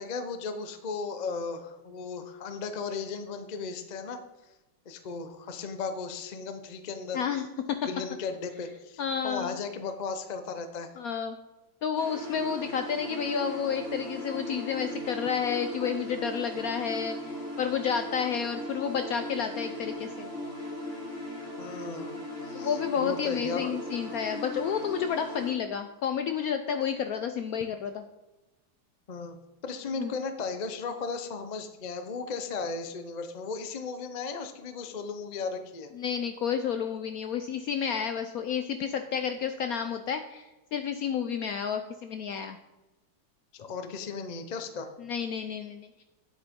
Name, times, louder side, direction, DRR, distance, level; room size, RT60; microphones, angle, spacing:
voice 1, 0.0-4.2 4.9-7.2 7.8-10.9 21.6-22.1 22.4-23.7 29.1-29.3 29.6-35.9 43.5-44.9, left 4 dB, 55° left, 8 dB, 0.4 m, -36 dB
voice 2, 7.1-7.8 9.0-9.6 11.0-11.4 11.8-20.3 22.5-28.0 30.0-30.1 36.0-42.6 45.0-46.0, left 7 dB, 75° left, 8 dB, 0.8 m, -31 dB
sound 1, 12.0-25.5, equal, 10° right, 2.4 m, -38 dB
9.5 x 8.1 x 3.7 m, 1.1 s
omnidirectional pair, 2.0 m